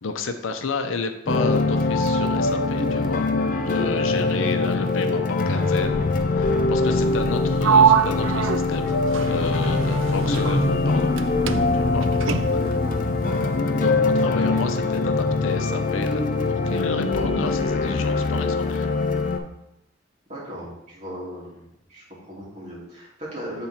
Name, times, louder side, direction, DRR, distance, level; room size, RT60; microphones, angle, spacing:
voice 1, 0.0-3.3 3.6-6.0 6.4-8.9 9.3-11.1 11.7-12.1 12.5-12.6 13.8-16.2 16.5-18.9, left 4 dB, 85° left, 7 dB, 0.6 m, -30 dB
sound 1, 1.3-19.4, left 3 dB, 45° left, 0.5 m, -23 dB
voice 2, 4.3-4.6 12.8-13.5 20.3-23.7, equal, 35° right, -7 dB, 2.4 m, -38 dB
Sliding door, 7.6-11.2 11.5-12.8, right 7 dB, 80° right, 0.4 m, -23 dB
7.3 x 3.7 x 4.3 m, 0.87 s
head